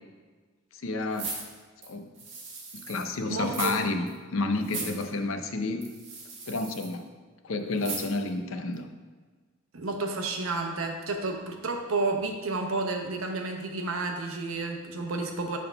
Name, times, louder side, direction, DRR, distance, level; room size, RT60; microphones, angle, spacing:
voice 1, 0.8-1.3 1.8-2.1 2.7-4.1 4.3-5.9 6.5-7.1 7.4-8.9, left 3 dB, 75° left, 6 dB, 0.6 m, -30 dB
sound 1, 1.1-3.1 3.4-3.8 4.1-4.2 4.6-5.0 5.8-6.9 7.8-8.3 8.7-8.8, right 4 dB, 60° right, 1.4 m, -38 dB
voice 2, 3.3-3.8 9.7-15.6, right 3 dB, 80° right, 3 dB, 0.8 m, -31 dB
5.8 x 3.6 x 5.5 m, 1.4 s
head